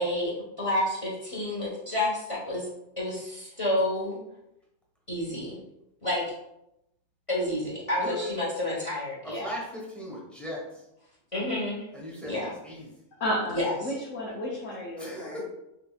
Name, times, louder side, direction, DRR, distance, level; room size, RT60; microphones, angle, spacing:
voice 1, 0.0-2.7 3.0-4.2 5.1-5.6 6.0-6.2 7.3-9.5 11.3-11.9 12.2-12.5 13.5-13.7, left 1 dB, 25° left, -6 dB, 1.3 m, -29 dB
voice 2, 8.0-8.4 9.2-10.6 11.9-12.9 15.0-15.4, equal, ahead, -3 dB, 1.1 m, -38 dB
voice 3, 13.2-15.4, equal, 85° left, -5 dB, 1.2 m, -32 dB
5.9 x 2.8 x 2.4 m, 0.85 s
omnidirectional pair, 1.3 m